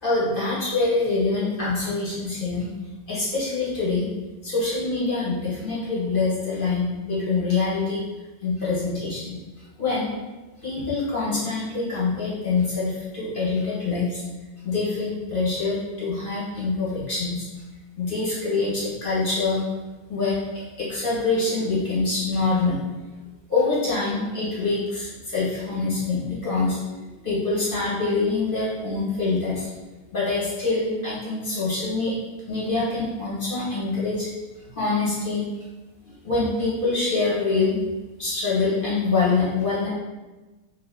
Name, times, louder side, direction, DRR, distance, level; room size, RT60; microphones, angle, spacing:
voice 1, 0.0-2.7 3.1-4.1 4.4-8.0 8.4-9.3 9.8-10.1 10.6-14.2 14.6-17.5 18.0-19.6 20.1-22.8 23.5-29.7 30.1-32.1 32.5-34.3 34.7-35.5 36.0-37.8 38.2-39.9, left 3 dB, 40° left, -8 dB, 1.0 m, -25 dB
2.7 x 2.5 x 3.3 m, 1.2 s
omnidirectional pair, 1.6 m